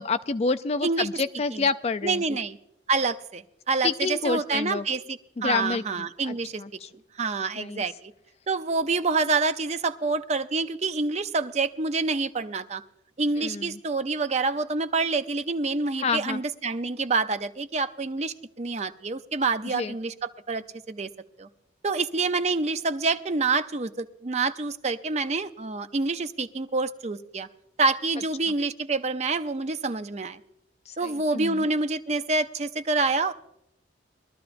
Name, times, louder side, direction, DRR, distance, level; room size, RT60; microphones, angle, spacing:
voice 1, 0.0-2.2 3.8-4.8 5.4-6.9 7.6-7.8 13.4-13.8 16.0-16.4 19.6-19.9 30.9-31.6, left 4 dB, 35° left, 11 dB, 0.4 m, -28 dB
voice 2, 2.0-2.6 2.9-6.6 7.1-8.1 8.5-12.8 13.2-21.1 21.4-21.5 21.8-27.5 27.8-30.4 31.0-33.3, right 3 dB, 35° right, 10 dB, 0.5 m, -27 dB
21.5 x 13.0 x 2.6 m, 0.81 s
head